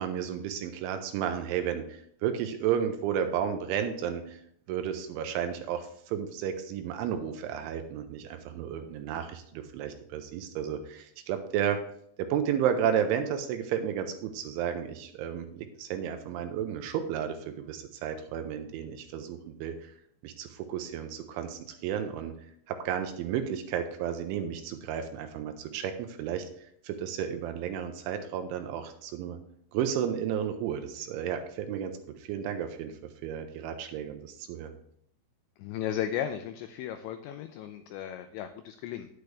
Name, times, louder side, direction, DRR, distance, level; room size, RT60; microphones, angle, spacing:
voice 1, 0.0-4.4 4.7-11.8 12.2-19.9 20.2-22.3 22.7-26.5 26.8-29.4 29.7-33.0 33.2-34.7, right 9 dB, 85° right, 7 dB, 3.0 m, -32 dB
voice 2, 35.6-39.1, left 10 dB, 85° left, 8 dB, 2.6 m, -35 dB
10.5 x 8.0 x 3.3 m, 0.68 s
omnidirectional pair, 5.7 m